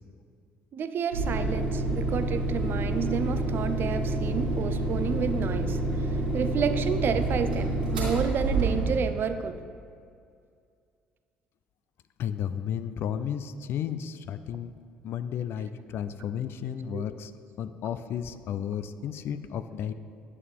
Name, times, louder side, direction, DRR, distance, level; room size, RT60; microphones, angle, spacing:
voice 1, 0.7-5.8 6.3-9.6 16.9-17.1, right 6 dB, 45° right, 10 dB, 0.6 m, -30 dB
sound 1, 1.1-9.2, right 2 dB, 85° right, 2.0 m, -28 dB
voice 2, 12.2-14.7 15.0-17.3 17.6-19.9, left 9 dB, 55° left, 12 dB, 0.4 m, -33 dB
11.0 x 7.4 x 3.6 m, 2.3 s
figure-of-eight pair, 50°, 5 cm